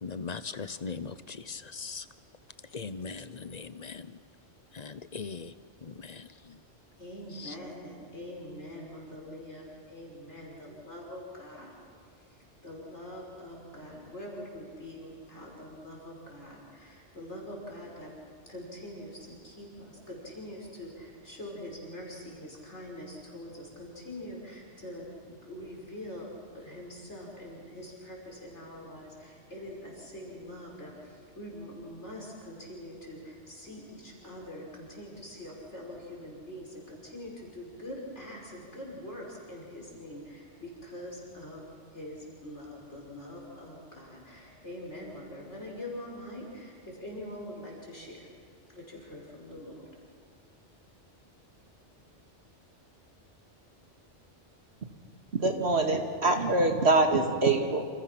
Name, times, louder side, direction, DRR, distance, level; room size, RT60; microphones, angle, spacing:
voice 1, 0.0-2.0 2.7-4.1 4.7-5.5 5.8-6.3 7.4-7.5, left 5 dB, 40° left, 13 dB, 0.8 m, -39 dB
voice 2, 7.0-11.7 12.2-18.1 18.5-41.6 41.9-48.3 48.7-49.8, left 1 dB, 70° left, -2 dB, 6.0 m, -44 dB
voice 3, 55.3-57.8, right 2 dB, 60° right, 4 dB, 2.3 m, -24 dB
28.5 x 27.0 x 6.0 m, 2.1 s
omnidirectional pair, 1.2 m